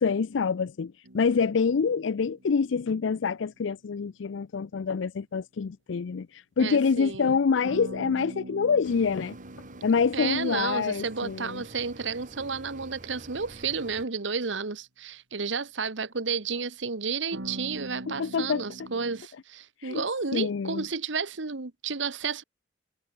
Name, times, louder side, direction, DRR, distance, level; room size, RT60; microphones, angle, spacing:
voice 1, 0.0-9.4 9.8-11.6 18.1-18.6 19.8-20.0 20.3-20.8, left 5 dB, 70° left, 0.5 m, -26 dB
sound 1, 1.0-3.3 7.6-12.4 17.3-19.2, right 1 dB, 90° right, 3.3 m, -44 dB
voice 2, 6.6-7.4 10.1-22.4, right 5 dB, 70° right, 1.3 m, -32 dB
sound 2, 8.8-14.1, right 2 dB, 45° right, 1.9 m, -47 dB
head